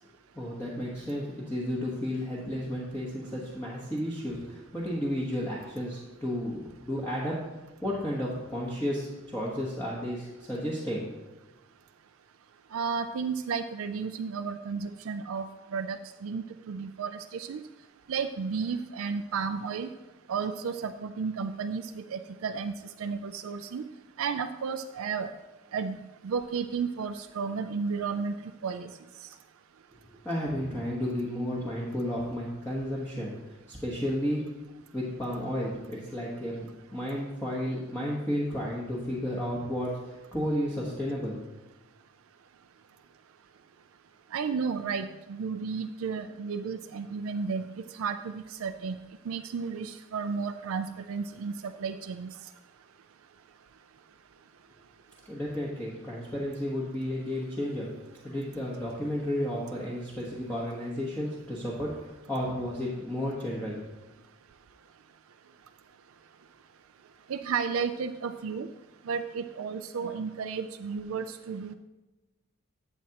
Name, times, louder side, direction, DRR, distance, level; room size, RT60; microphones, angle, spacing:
voice 1, 0.3-7.4 7.8-11.1 29.9-34.5 34.9-41.4 55.3-57.9 58.2-63.9, equal, 10° left, -6 dB, 1.2 m, -32 dB
voice 2, 12.7-15.5 15.7-17.6 18.1-19.9 20.3-22.7 23.0-23.8 24.2-25.3 25.7-28.4 28.6-28.9 44.3-49.0 49.3-52.3 67.3-68.7 69.1-71.7, right 5 dB, 80° right, 8 dB, 0.4 m, -33 dB
11.5 x 7.5 x 2.9 m, 1.1 s
head